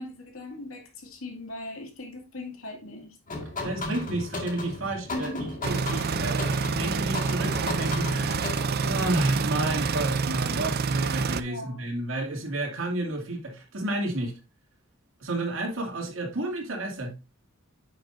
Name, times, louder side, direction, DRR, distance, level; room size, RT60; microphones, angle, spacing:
voice 1, 0.0-3.2 5.1-5.6 11.5-11.8, left 1 dB, 70° left, 2.4 m, -39 dB
sound 1, 3.3-9.1, left 2 dB, 40° left, 1.9 m, -35 dB
voice 2, 3.6-5.3 5.7-8.5 8.8-14.3 15.2-17.1, right 1 dB, 65° right, 2.5 m, -31 dB
sound 2, 5.6-11.4, right 4 dB, 50° right, 0.5 m, -27 dB
9.8 x 6.2 x 2.6 m
head